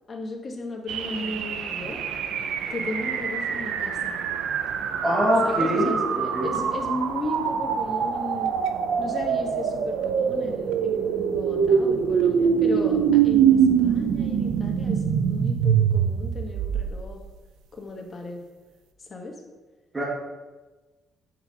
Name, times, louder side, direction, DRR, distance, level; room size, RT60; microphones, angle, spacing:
voice 1, 0.1-2.0 2.7-4.2 5.4-8.5 9.0-13.0 13.2-17.2 17.7-18.4 19.1-19.3, left 2 dB, 35° left, 1 dB, 1.3 m, -35 dB
sound 1, 0.9-17.2, right 7 dB, 85° right, 0.5 m, -24 dB
voice 2, 5.0-6.5 19.9-20.0, equal, 25° right, -5 dB, 1.6 m, -24 dB
7.4 x 4.9 x 4.0 m, 1.2 s
cardioid pair, 90°, 0 cm